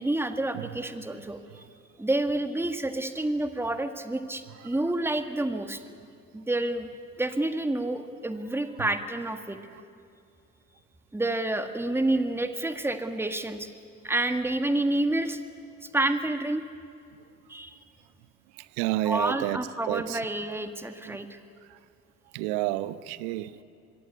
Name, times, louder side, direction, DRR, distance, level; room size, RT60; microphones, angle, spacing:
voice 1, 0.0-1.4 2.0-5.8 6.3-6.9 7.2-9.6 11.1-13.7 14.0-15.4 15.9-16.6 17.5-17.8 19.0-21.4, right 2 dB, 5° right, 7 dB, 1.8 m, -29 dB
voice 2, 18.8-19.6 19.9-20.2 22.3-23.6, right 16 dB, 65° right, 16 dB, 1.0 m, -29 dB
27.0 x 22.0 x 8.4 m, 2.4 s
figure-of-eight pair, 55°, 38 cm